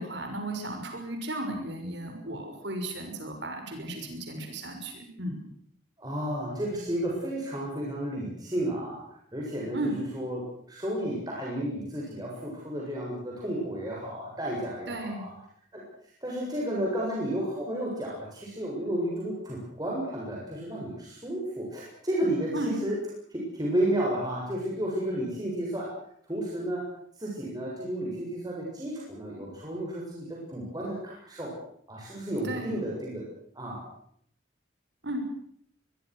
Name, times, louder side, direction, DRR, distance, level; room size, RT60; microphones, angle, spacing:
voice 1, 0.0-5.4 9.7-10.0 14.9-15.2 22.5-22.7 32.4-32.7 35.0-35.2, right 1 dB, 65° right, 4 dB, 6.3 m, -34 dB
voice 2, 6.0-9.0 9.3-10.4 10.7-15.3 15.7-15.8 16.2-23.0 23.3-25.9 26.3-26.9 27.2-31.5 31.9-33.2 33.5-33.8, right 1 dB, 20° right, -4 dB, 7.5 m, -32 dB
23.5 x 23.5 x 6.5 m, 0.67 s
head